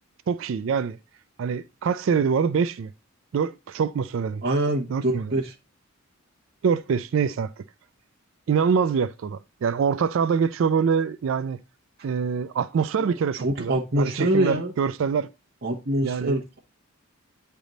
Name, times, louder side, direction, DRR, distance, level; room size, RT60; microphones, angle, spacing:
voice 1, 0.3-1.0 1.4-2.9 3.3-4.4 4.9-5.3 6.6-7.6 8.5-11.6 12.0-15.3 16.0-16.4, right 6 dB, 65° right, 0.3 m, -25 dB
voice 2, 4.4-5.5 13.0-13.1 13.3-14.7 15.6-16.6, right 1 dB, 45° right, 1.1 m, -25 dB
8.9 x 3.4 x 3.9 m
head